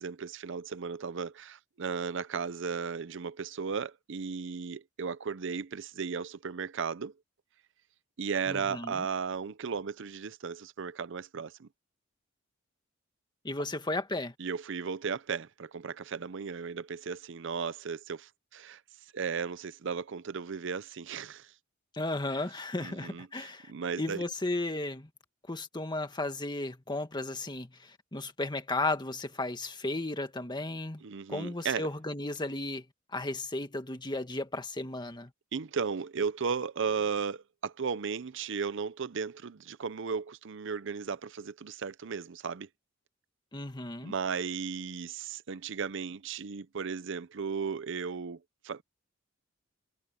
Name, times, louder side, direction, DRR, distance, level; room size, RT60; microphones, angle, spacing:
voice 1, 0.0-7.1 8.2-11.7 14.4-18.8 19.1-21.5 22.8-24.2 31.0-31.9 35.5-42.7 44.0-48.4 48.6-48.8, right 5 dB, 65° right, 0.6 m, -35 dB
voice 2, 8.5-9.0 13.4-14.3 21.9-23.7 24.0-25.1 25.5-31.0 31.3-32.8 33.1-35.3 43.5-44.1, left 2 dB, 20° left, 1.7 m, -34 dB
head